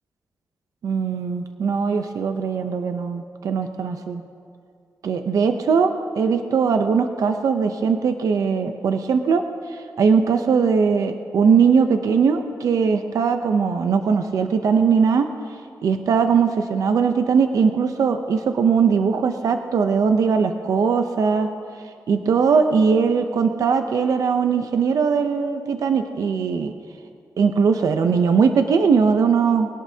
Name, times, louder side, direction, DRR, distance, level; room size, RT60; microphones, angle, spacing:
voice 1, 0.8-4.2 5.0-15.3 15.8-21.5 22.1-26.7 27.4-29.7, right 5 dB, 65° right, 7 dB, 0.7 m, -20 dB
23.0 x 17.5 x 2.8 m, 2.5 s
wide cardioid pair, 150°, 6 cm